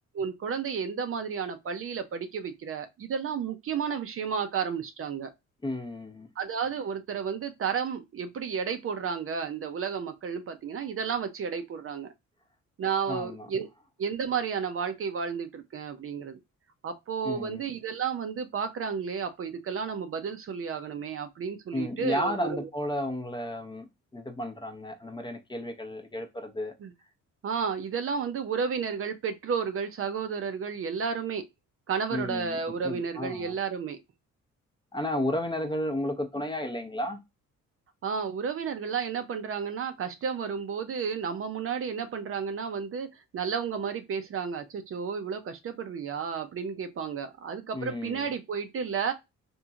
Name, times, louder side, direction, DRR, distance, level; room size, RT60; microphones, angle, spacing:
voice 1, 0.1-5.3 6.4-12.1 12.8-13.7 14.0-16.4 16.8-22.7 26.8-26.9 27.4-31.4 31.9-34.0 38.0-49.1, right 6 dB, 45° right, 0.5 m, -32 dB
voice 2, 5.6-6.3 13.1-13.5 17.2-17.6 21.7-23.9 24.1-26.7 32.1-33.6 34.9-37.2 47.7-48.3, left 1 dB, 15° left, 0.6 m, -33 dB
2.9 x 2.7 x 2.4 m
cardioid pair, 90°, 30 cm